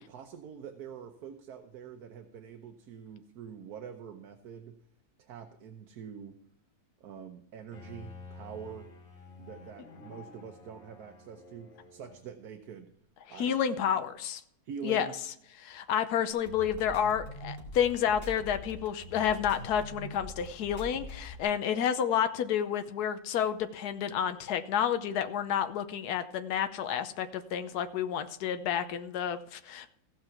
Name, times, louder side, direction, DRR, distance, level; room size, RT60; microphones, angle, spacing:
voice 1, 0.0-4.8 5.2-6.3 7.0-8.9 9.4-12.9 13.3-13.6 14.6-15.2, right 7 dB, 75° right, 6 dB, 1.4 m, -45 dB
Bowed string instrument, 7.7-12.5, left 4 dB, 60° left, 2.4 m, -51 dB
voice 2, 13.4-14.4 14.8-15.1 15.6-29.9, left 9 dB, 80° left, 9 dB, 1.3 m, -30 dB
sound 1, 16.3-21.4, equal, 35° left, 3.4 m, -43 dB
16.0 x 5.9 x 5.9 m, 0.71 s
omnidirectional pair, 1.7 m